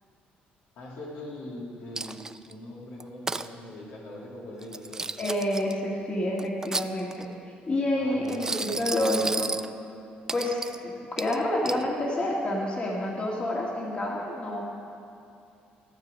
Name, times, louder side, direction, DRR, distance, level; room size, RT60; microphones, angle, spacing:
voice 1, 0.8-5.1 7.9-9.3, left 1 dB, 80° left, -3 dB, 2.4 m, -42 dB
Coin (dropping), 1.9-2.5 3.0-3.5 4.6-5.7 6.4-7.3 8.2-9.7 10.3-10.8 11.2-11.8, right 3 dB, 15° right, 0.3 m, -33 dB
voice 2, 5.2-7.2 7.7-9.5 10.3-14.6, left 1 dB, 35° left, -2 dB, 2.0 m, -28 dB
15.0 x 7.7 x 5.3 m, 2.6 s
cardioid pair, 100°, 3 cm